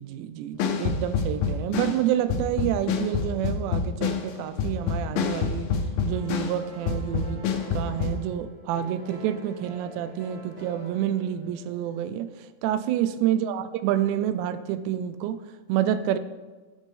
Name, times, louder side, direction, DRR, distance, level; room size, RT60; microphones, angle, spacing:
voice 1, 0.0-5.7 6.1-7.4 7.7-12.3 12.6-15.4 15.7-16.2, right 11 dB, 85° right, 12 dB, 2.5 m, -28 dB
sound 1, 0.6-6.6 6.9-8.2, left 6 dB, 80° left, 2.1 m, -27 dB
sound 2, 6.1-12.0, right 2 dB, 30° right, 2.6 m, -45 dB
15.5 x 7.5 x 3.6 m, 1.3 s
omnidirectional pair, 5.3 m